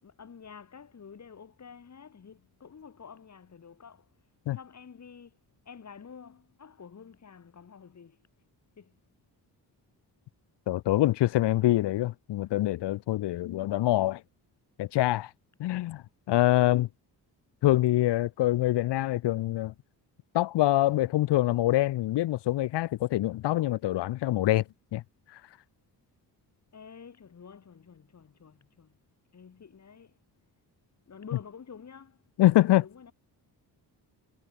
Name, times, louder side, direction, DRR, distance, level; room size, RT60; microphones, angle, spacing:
voice 1, 0.0-4.1 4.5-5.4 5.6-8.2 8.8-9.0 15.7-16.0 26.7-29.0 29.3-30.2 31.1-32.2 32.8-33.1, left 6 dB, 40° left, 3.2 m, -49 dB
voice 2, 10.7-14.2 14.8-15.3 15.6-16.9 17.6-19.7 20.3-24.6 24.9-25.0 32.4-32.8, left 15 dB, 90° left, 0.8 m, -25 dB
cardioid pair, 125°, 40 cm